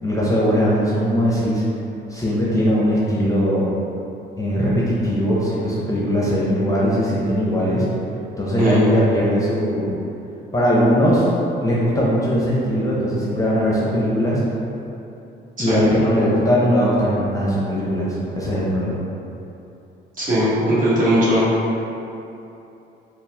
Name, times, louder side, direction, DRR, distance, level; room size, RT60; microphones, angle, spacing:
voice 1, 0.0-1.6 2.1-3.7 4.4-7.9 8.4-9.9 10.5-11.3 11.6-14.4 15.6-19.0, equal, 15° left, -6 dB, 0.7 m, -20 dB
voice 2, 8.6-8.9 15.6-15.8 20.2-21.4, equal, 40° right, -9 dB, 1.3 m, -18 dB
4.3 x 2.0 x 3.4 m, 2.8 s
cardioid pair, 90°, 20 cm